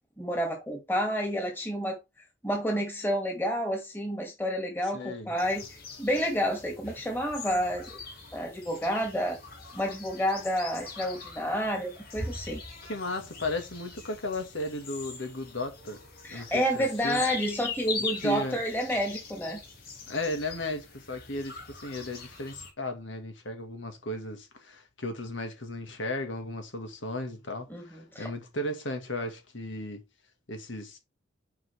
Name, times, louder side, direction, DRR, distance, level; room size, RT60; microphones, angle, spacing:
voice 1, 0.2-2.0 2.4-8.0 8.3-9.4 9.7-12.6 16.2-19.6 27.7-28.3, equal, 10° left, 2.4 m, -30 dB
voice 2, 4.8-5.3 12.8-16.0 16.3-17.2 18.2-18.6 20.1-30.0 30.5-31.0, left 1 dB, 65° left, 1.9 m, -35 dB
sound 1, 5.4-22.7, left 4 dB, 45° left, 2.8 m, -42 dB
7.3 x 5.3 x 3.5 m
head